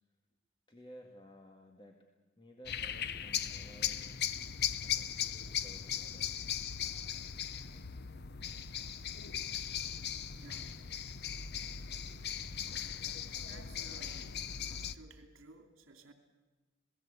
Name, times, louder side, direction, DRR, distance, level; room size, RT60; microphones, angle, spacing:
voice 1, 0.7-2.0 2.4-4.2 4.8-6.3, equal, 25° left, 2 dB, 1.9 m, -55 dB
sound 1, 2.7-15.0, left 9 dB, 50° left, 0.8 m, -38 dB
voice 2, 10.3-10.9 13.5-14.4 14.6-16.1, right 3 dB, 75° right, 5 dB, 2.7 m, -56 dB
27.5 x 18.5 x 8.3 m, 1.2 s
head